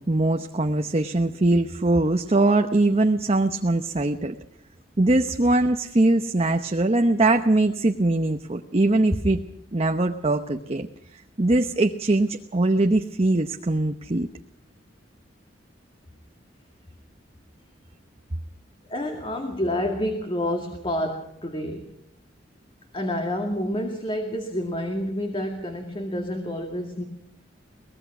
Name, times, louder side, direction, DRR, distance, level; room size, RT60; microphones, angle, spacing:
voice 1, 0.0-4.4 5.0-9.4 9.7-10.9 11.4-14.3, right 2 dB, 35° right, 6 dB, 0.9 m, -22 dB
voice 2, 18.9-21.8 22.9-27.0, left 1 dB, 30° left, 4 dB, 2.2 m, -28 dB
23.5 x 20.0 x 6.1 m, 0.78 s
head